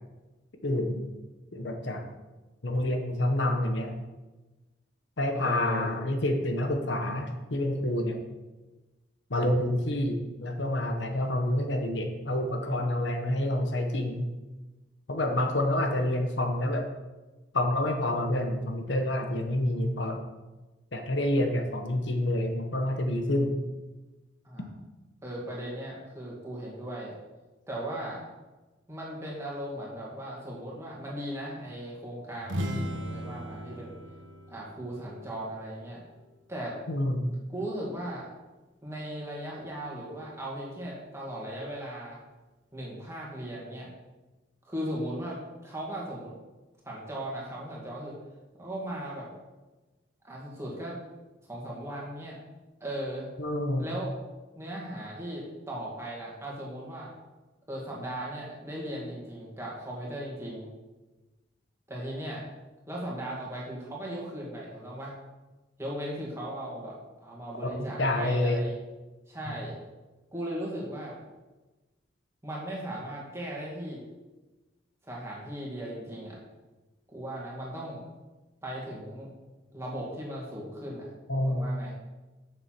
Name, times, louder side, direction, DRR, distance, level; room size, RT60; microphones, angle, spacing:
voice 1, 0.6-1.1 1.5-2.0 2.6-3.9 5.2-8.2 9.3-14.3 15.1-16.9 17.5-20.2 20.9-23.6 36.9-37.3 53.4-53.9 68.0-68.6 69.5-69.6 81.3-81.9, left 1 dB, 65° left, 4 dB, 1.1 m, -28 dB
voice 2, 5.3-5.9 24.4-24.7 25.2-27.1 27.7-28.3 28.9-34.0 34.5-36.0 36.5-36.8 37.5-38.3 38.8-42.2 42.7-43.9 44.6-46.3 46.8-48.2 48.6-49.3 50.2-51.0 51.5-52.4 52.8-53.3 53.8-54.1 54.6-57.1 57.7-60.7 61.9-62.4 62.9-65.1 65.8-66.9 67.2-68.8 69.3-69.8 70.3-71.1 72.4-74.0 75.0-76.4 77.1-78.0 78.6-79.3 79.7-81.1 81.4-81.9, right 1 dB, 15° right, -4 dB, 2.3 m, -37 dB
sound 1, 32.4-36.2, equal, 75° right, 1.1 m, -37 dB
7.7 x 6.8 x 6.0 m, 1.2 s
head